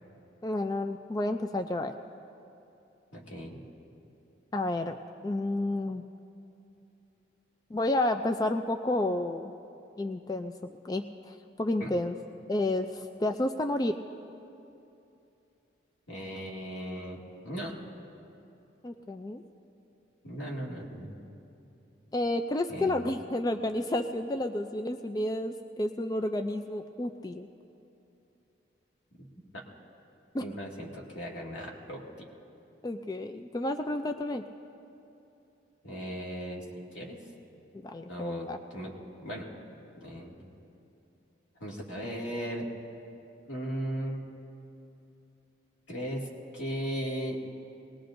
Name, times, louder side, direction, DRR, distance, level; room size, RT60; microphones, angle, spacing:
voice 1, 0.4-1.9 4.5-5.0 5.2-6.0 7.7-9.5 10.0-12.2 12.5-14.0 18.8-19.4 22.1-27.5 30.3-30.5 32.8-34.4 37.8-38.6, left 1 dB, 20° left, 6 dB, 0.3 m, -31 dB
voice 2, 3.1-3.6 11.8-11.9 16.1-17.7 20.2-21.2 22.7-23.1 29.1-29.3 29.5-29.6 30.4-32.0 35.8-36.6 36.9-37.2 38.0-38.9 39.2-39.5 40.0-40.5 41.6-42.7 43.5-44.3 45.9-47.4, equal, 85° left, -3 dB, 2.2 m, -37 dB
23.0 x 19.0 x 2.6 m, 2.8 s
head